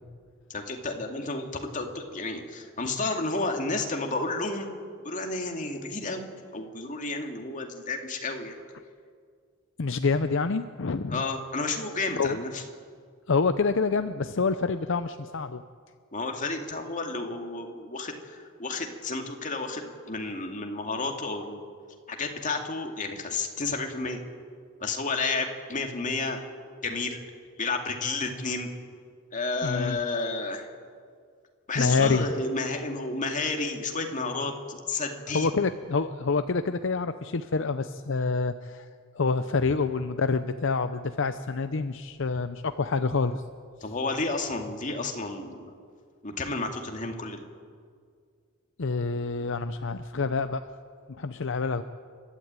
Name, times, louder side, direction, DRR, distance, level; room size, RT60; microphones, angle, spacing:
voice 1, 0.5-4.7 5.0-6.2 6.5-8.6 11.1-12.6 16.1-21.6 22.1-24.2 24.8-26.5 26.8-27.2 27.6-28.7 29.3-30.7 31.7-34.5 34.9-35.5 43.8-45.7 46.2-47.4, left 3 dB, 40° left, 3 dB, 2.4 m, -31 dB
voice 2, 9.8-11.2 12.2-12.4 13.3-15.6 29.6-30.0 31.8-32.2 35.3-38.9 39.2-43.4 48.8-50.6 51.2-51.8, left 4 dB, 65° left, 10 dB, 0.7 m, -27 dB
30.0 x 12.5 x 9.0 m, 2.1 s
head